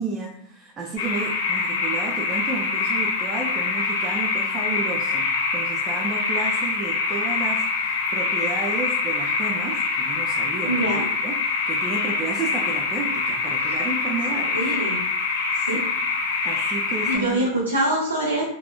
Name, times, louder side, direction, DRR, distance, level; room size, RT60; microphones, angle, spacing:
voice 1, 0.0-10.8 11.2-11.4 11.7-14.6 15.6-15.9 16.4-17.5, right 4 dB, 25° right, 0 dB, 0.4 m, -32 dB
sound 1, 1.0-17.2, left 4 dB, 60° left, 0.7 m, -25 dB
voice 2, 10.6-11.0 14.5-15.0 15.6-15.8 17.1-18.4, right 1 dB, 85° right, -5 dB, 0.5 m, -24 dB
3.2 x 2.1 x 2.2 m, 0.69 s
figure-of-eight pair, 90°, 0 cm